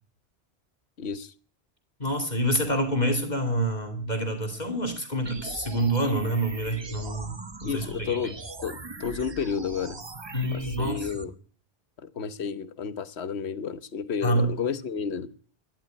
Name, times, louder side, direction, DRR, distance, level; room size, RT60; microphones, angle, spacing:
voice 1, 1.0-1.3 7.6-10.0 10.5-11.3 12.0-15.3, left 6 dB, 85° left, 1.3 m, -31 dB
voice 2, 2.0-8.2 10.3-11.1 14.2-14.5, right 1 dB, 40° left, 2.6 m, -27 dB
sound 1, 5.2-11.2, right 3 dB, 25° right, 0.9 m, -41 dB
12.5 x 11.5 x 8.8 m
omnidirectional pair, 1.1 m